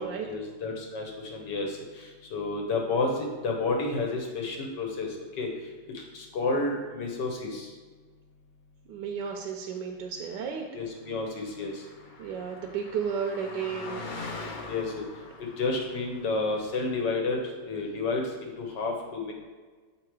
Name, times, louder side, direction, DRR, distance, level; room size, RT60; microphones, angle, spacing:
voice 1, 0.0-5.5 5.9-7.7 10.7-11.8 14.7-15.1 15.4-17.4 17.6-19.3, left 3 dB, 80° left, 1 dB, 1.8 m, -31 dB
voice 2, 8.9-10.6 12.2-14.0, right 6 dB, 85° right, 1 dB, 1.3 m, -33 dB
Car passing by, 11.1-17.0, left 3 dB, 45° left, 0.6 m, -43 dB
7.6 x 3.9 x 4.6 m, 1.4 s
omnidirectional pair, 1.8 m